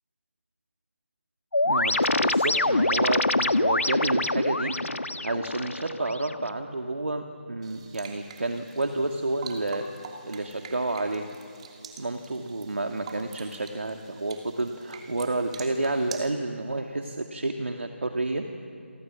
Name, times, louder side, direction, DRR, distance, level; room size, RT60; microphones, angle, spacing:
sound 1, 1.5-6.5, left 2 dB, 75° left, 1.3 m, -25 dB
voice 1, 1.6-4.7 5.2-9.8 10.2-11.3 12.0-18.4, right 2 dB, 65° right, 4 dB, 2.3 m, -30 dB
sound 2, 7.6-16.3, right 5 dB, 30° right, 2.9 m, -46 dB
28.5 x 26.0 x 7.6 m, 2.6 s
figure-of-eight pair, 155°, 7 cm